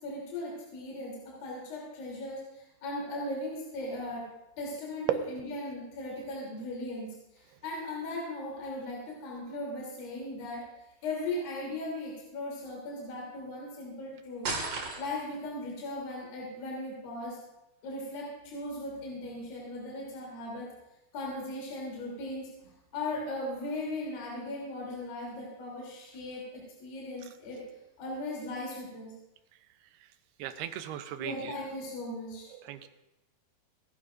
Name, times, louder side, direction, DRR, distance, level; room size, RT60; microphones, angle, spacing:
voice 1, 0.0-4.2 4.6-7.1 7.3-10.7 11.0-14.5 15.0-17.4 17.8-20.7 21.1-27.6 28.0-29.1 31.2-32.5, left 2 dB, 65° left, -4 dB, 5.0 m, -38 dB
sound 1, 14.4-15.4, right 3 dB, 45° right, 2.6 m, -34 dB
voice 2, 30.4-31.6 32.6-32.9, right 12 dB, 90° right, 10 dB, 2.8 m, -34 dB
28.5 x 11.0 x 2.6 m, 0.94 s
omnidirectional pair, 4.5 m